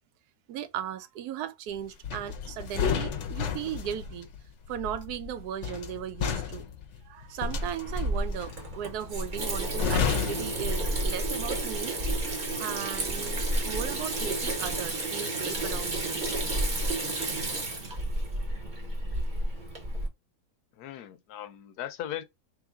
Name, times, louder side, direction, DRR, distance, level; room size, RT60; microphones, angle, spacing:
voice 1, 0.5-4.3 4.7-6.7 7.0-12.0 12.6-16.2, right 10 dB, 85° right, 1.1 m, -37 dB
sound 1, 2.0-11.4 11.7-12.0, left 7 dB, 60° left, 0.8 m, -33 dB
Water tap faucet / Sink (filling or washing), 7.4-20.1, right 1 dB, 35° right, 1.0 m, -31 dB
voice 2, 20.8-22.2, left 11 dB, 90° left, 1.2 m, -38 dB
3.2 x 3.0 x 3.5 m
omnidirectional pair, 1.6 m